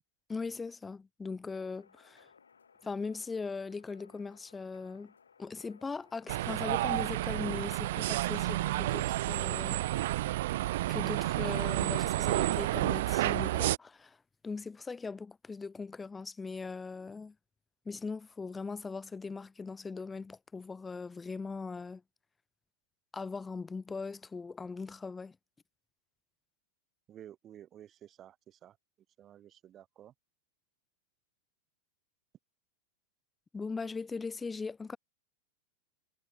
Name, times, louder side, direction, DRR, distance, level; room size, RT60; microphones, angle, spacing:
voice 1, 0.3-2.3 2.8-5.1 5.4-9.9 10.9-14.2 14.4-17.3 17.9-22.0 23.1-25.4 33.5-35.0, left 4 dB, 15° left, 2.0 m, -40 dB
sound 1, 1.5-8.4, left 6 dB, 70° left, 6.3 m, -62 dB
sound 2, 6.3-13.8, right 16 dB, 55° right, 0.9 m, -30 dB
voice 2, 27.1-28.8 29.2-30.1, right 11 dB, 30° right, 3.5 m, -53 dB
figure-of-eight pair, 90°, 0 cm